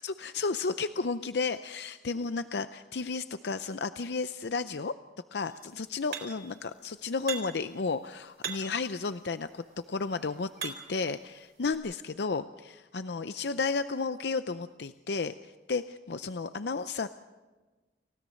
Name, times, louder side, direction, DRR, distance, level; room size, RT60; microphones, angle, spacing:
voice 1, 0.0-4.9 5.3-17.1, left 4 dB, 75° left, 11 dB, 0.6 m, -33 dB
sound 1, 6.1-6.6 7.3-7.7 8.4-8.9 9.7-11.1 11.7-11.8, right 6 dB, 70° right, 4.0 m, -39 dB
29.5 x 16.5 x 6.4 m, 1.2 s
head